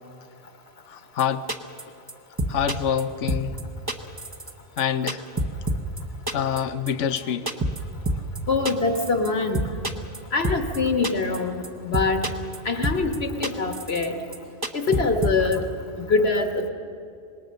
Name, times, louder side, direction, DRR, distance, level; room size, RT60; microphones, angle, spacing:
voice 1, 0.9-1.5 2.5-3.6 4.8-5.2 6.3-7.6 14.9-15.1, left 8 dB, 85° left, 1.1 m, -26 dB
sound 1, 1.2-1.3 1.5-1.8 2.1-2.2 2.4-3.0 3.3-3.6 3.9-4.5 4.8-4.9 5.1-6.0 6.3-6.6 6.9-7.0 7.2-7.3 7.5-7.8 8.1-8.4 8.6-9.3 9.5-10.2 10.4-10.8 11.0-11.4 11.6-11.7 11.9-12.6 12.8-13.2 13.4-14.1 14.3-14.4 14.6-15.6, right 1 dB, 20° right, 1.0 m, -26 dB
voice 2, 8.5-9.7 10.3-11.6 11.8-12.3 12.6-14.2 14.7-15.6 16.0-16.7, left 3 dB, 60° left, 1.6 m, -24 dB
26.0 x 19.5 x 6.5 m
omnidirectional pair, 1.2 m